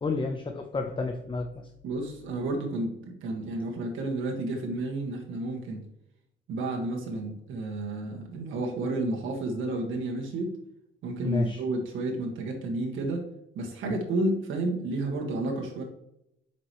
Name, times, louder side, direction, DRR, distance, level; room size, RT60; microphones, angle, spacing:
voice 1, 0.0-1.7 11.2-11.6, left 3 dB, 25° left, 4 dB, 0.9 m, -30 dB
voice 2, 1.8-5.8 6.5-10.5 11.0-13.3 13.6-15.8, right 2 dB, 80° right, 1 dB, 1.8 m, -31 dB
7.8 x 6.1 x 3.2 m, 0.79 s
cardioid pair, 90°, 20 cm